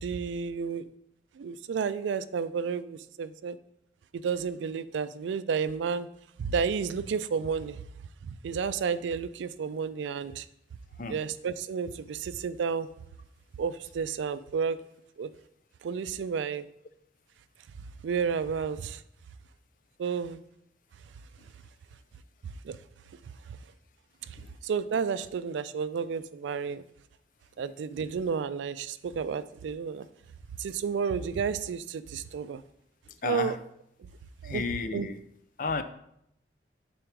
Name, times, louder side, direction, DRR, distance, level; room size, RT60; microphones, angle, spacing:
voice 1, 0.0-0.9 1.3-3.6 4.1-6.1 6.4-7.8 8.2-10.5 11.1-12.9 13.6-14.8 15.2-15.3 15.8-16.7 18.0-19.0 20.0-20.4 22.6-22.8 23.5-23.6 24.2-26.8 27.6-30.1 30.6-32.6 33.2-33.6 34.4-34.7 34.9-35.1, right 6 dB, 85° right, 0.3 m, -31 dB
voice 2, 33.2-33.6 34.4-35.2 35.6-35.8, left 4 dB, 45° left, 0.4 m, -32 dB
4.6 x 4.3 x 4.9 m
head